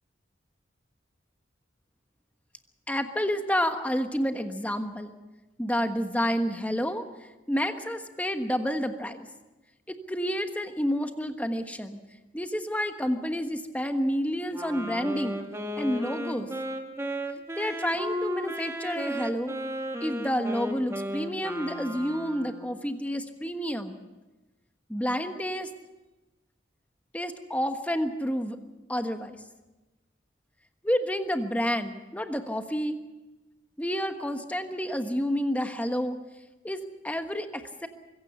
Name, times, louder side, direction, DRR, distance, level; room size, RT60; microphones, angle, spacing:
voice 1, 2.9-5.1 5.6-7.0 7.5-9.3 9.9-12.0 12.3-15.4 15.8-16.5 17.6-19.5 20.0-24.0 24.9-25.7 27.1-28.6 28.9-29.4 30.8-33.0 33.8-36.2 36.6-37.9, equal, 10° left, 7 dB, 1.3 m, -29 dB
Wind instrument woodwind instrument, 14.5-22.8, equal, 15° right, 1.9 m, -34 dB
23.5 x 16.0 x 7.0 m, 1.1 s
head